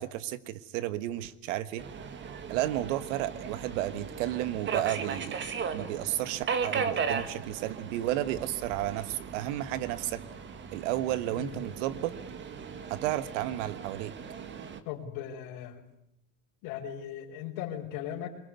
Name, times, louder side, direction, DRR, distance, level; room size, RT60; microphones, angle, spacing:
voice 1, 0.0-1.9 2.5-5.4 5.7-10.2 10.7-12.1 12.9-14.1, right 14 dB, 85° right, 14 dB, 1.6 m, -32 dB
Subway metro underground, 1.8-14.8, right 6 dB, 30° right, 1.8 m, -37 dB
voice 2, 14.8-15.8 16.6-18.3, left 10 dB, 60° left, -4 dB, 4.3 m, -38 dB
23.5 x 21.0 x 9.5 m, 0.75 s
cardioid pair, 145°, 36 cm